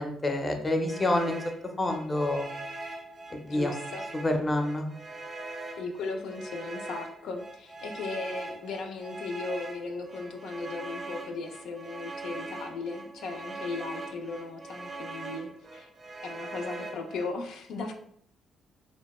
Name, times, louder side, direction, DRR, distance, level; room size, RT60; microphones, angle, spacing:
voice 1, 0.0-1.4 1.8-2.5 3.3-3.7 4.2-4.8, left 1 dB, 25° left, 4 dB, 0.5 m, -27 dB
sound 1, 0.9-17.3, right 2 dB, 40° right, 0.5 m, -42 dB
voice 2, 3.5-4.0 5.8-15.9 16.2-17.9, left 3 dB, 80° left, 3 dB, 0.3 m, -37 dB
2.8 x 2.1 x 2.9 m, 0.67 s
cardioid pair, 90°, 0 cm